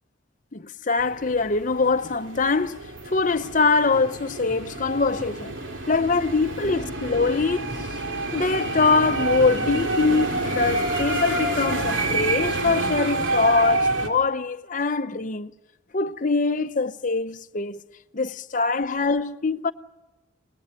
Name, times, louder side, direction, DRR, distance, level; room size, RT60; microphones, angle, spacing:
voice 1, 0.5-2.8 3.1-5.6 5.9-7.9 8.3-15.5 15.9-17.8 18.1-19.7, left 4 dB, 40° left, 0.7 m, -23 dB
sound 1, 1.0-14.1, right 2 dB, 80° right, 2.6 m, -28 dB
25.0 x 19.5 x 7.7 m
head